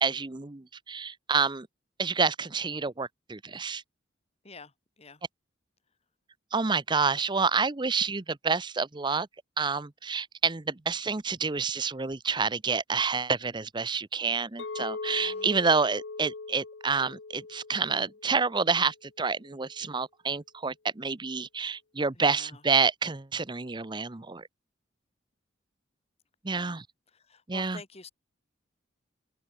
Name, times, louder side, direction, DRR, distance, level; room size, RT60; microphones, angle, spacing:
voice 1, 0.0-1.7 2.0-3.8 6.5-9.3 9.6-24.5 26.4-26.8 27.5-27.8, right 5 dB, 25° right, 0.7 m, -28 dB
voice 2, 4.4-5.2 15.2-15.7 19.8-19.9 22.2-22.6 26.5-26.8 27.1-28.1, left 3 dB, 35° left, 2.7 m, -49 dB
Chink clink, 14.6-18.8, left 3 dB, 70° left, 0.8 m, -40 dB
head